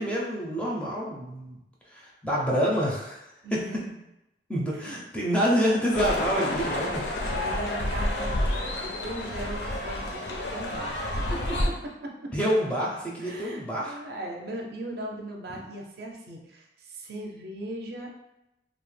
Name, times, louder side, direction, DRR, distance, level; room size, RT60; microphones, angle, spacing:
voice 1, 0.0-1.6 1.9-3.2 3.5-3.7 4.5-7.0 12.3-14.0, equal, 5° left, -4 dB, 0.4 m, -27 dB
voice 2, 3.4-4.0 4.7-5.3 6.5-6.9 7.3-11.0 11.2-12.3 13.2-18.1, right 1 dB, 60° right, 0 dB, 0.5 m, -38 dB
sound 1, 5.9-11.7, left 1 dB, 70° left, 0.5 m, -29 dB
2.8 x 2.0 x 3.1 m, 0.91 s
head